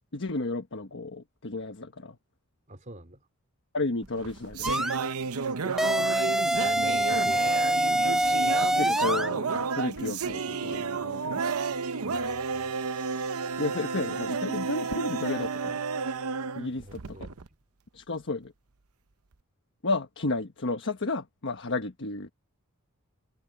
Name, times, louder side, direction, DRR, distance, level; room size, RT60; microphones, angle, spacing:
voice 1, 0.1-2.2 3.7-4.7 8.4-11.6 13.6-15.8 16.5-17.3 17.9-18.5 19.8-22.3, left 2 dB, 60° left, 1.3 m, -32 dB
voice 2, 2.7-3.2 5.6-7.8 12.0-12.7 16.7-17.4, right 1 dB, 35° right, 4.0 m, -46 dB
sound 1, 4.0-17.5, right 5 dB, 75° right, 0.8 m, -31 dB
sound 2, 4.6-5.0 5.8-9.3, right 1 dB, ahead, 0.5 m, -25 dB
head